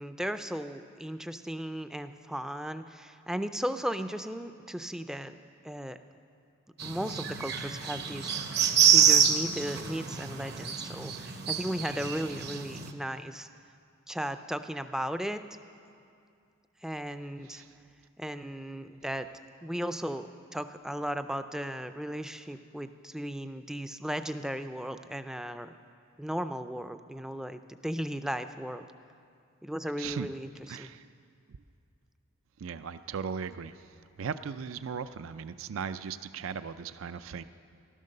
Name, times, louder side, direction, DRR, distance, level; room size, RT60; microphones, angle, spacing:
voice 1, 0.0-5.4 5.6-6.0 6.8-8.4 8.9-13.5 14.1-15.4 16.8-17.6 18.2-19.3 19.6-25.7 26.2-28.9 29.6-30.9, equal, 5° right, 9 dB, 0.4 m, -36 dB
sound 1, 6.8-12.9, right 8 dB, 50° right, 0.8 m, -27 dB
voice 2, 30.0-30.3 30.7-31.0 32.6-33.8 34.2-37.4, right 6 dB, 75° right, 12 dB, 0.4 m, -37 dB
14.5 x 12.5 x 6.6 m, 2.4 s
head